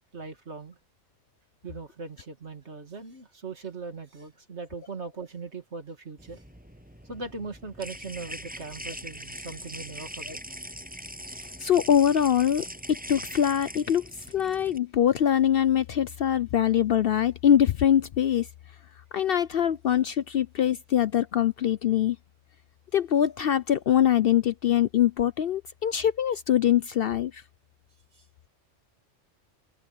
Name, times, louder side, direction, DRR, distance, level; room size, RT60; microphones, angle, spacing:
voice 1, 0.1-0.8 1.6-6.4 7.0-10.4 28.1-28.2, right 4 dB, 60° right, 2.6 m, -39 dB
sound 1, 6.2-14.8, equal, 5° right, 7.7 m, -41 dB
voice 2, 11.6-12.7 13.1-14.1 14.3-18.5 19.1-22.2 22.9-27.4, left 10 dB, 60° left, 0.7 m, -23 dB
omnidirectional pair, 1.3 m